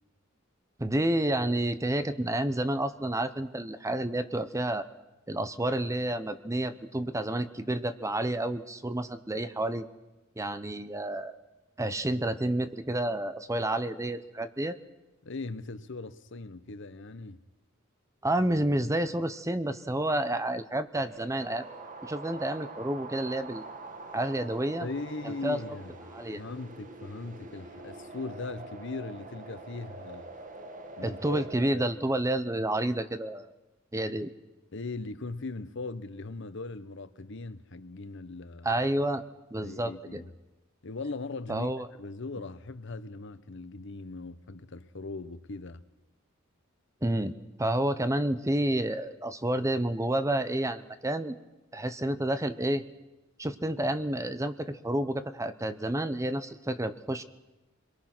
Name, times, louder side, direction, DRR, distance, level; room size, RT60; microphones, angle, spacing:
voice 1, 0.8-4.9 5.3-9.8 10.4-11.4 11.8-14.8 18.2-21.7 22.0-23.6 24.1-24.9 25.2-25.6 26.1-26.4 31.0-33.5 33.9-34.3 38.6-39.2 39.5-40.2 41.5-41.9 47.0-47.3 47.6-51.4 51.7-52.8 53.4-57.2, right 1 dB, 15° right, 0.8 m, -30 dB
voice 2, 15.2-17.4 24.8-25.9 26.3-30.3 31.0-31.4 31.7-31.9 34.7-38.7 39.6-40.3 40.8-41.7 42.0-45.8, left 3 dB, 65° left, 1.0 m, -39 dB
sound 1, 20.9-31.7, right 2 dB, 40° right, 1.8 m, -45 dB
28.0 x 22.0 x 6.1 m
head